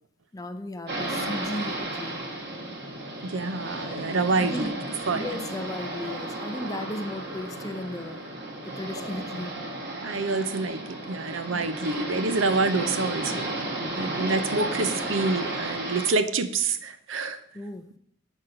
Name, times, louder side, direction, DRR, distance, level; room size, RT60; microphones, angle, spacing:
voice 1, 0.3-2.2 4.4-4.8 5.1-8.2 8.6-9.5 11.5-11.8 17.5-17.9, left 1 dB, 20° left, 9 dB, 0.5 m, -35 dB
sound 1, 0.9-16.1, right 1 dB, 55° right, 2.3 m, -33 dB
voice 2, 3.2-4.7 5.1-5.3 10.0-13.5 13.9-17.4, right 3 dB, 75° right, 11 dB, 0.6 m, -27 dB
7.7 x 4.2 x 6.5 m, 0.71 s
head